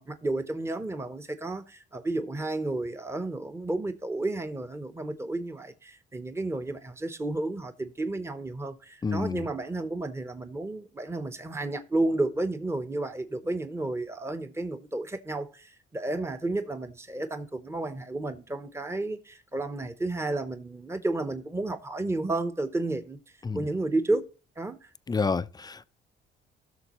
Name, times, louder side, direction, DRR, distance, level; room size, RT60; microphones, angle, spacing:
voice 1, 0.0-23.2 23.5-24.3 24.6-24.9, right 2 dB, 15° right, 0.9 m, -32 dB
voice 2, 9.0-9.4 23.4-23.6 25.1-25.9, left 4 dB, 20° left, 0.4 m, -29 dB
16.0 x 6.5 x 3.0 m
cardioid pair, 90°, 20 cm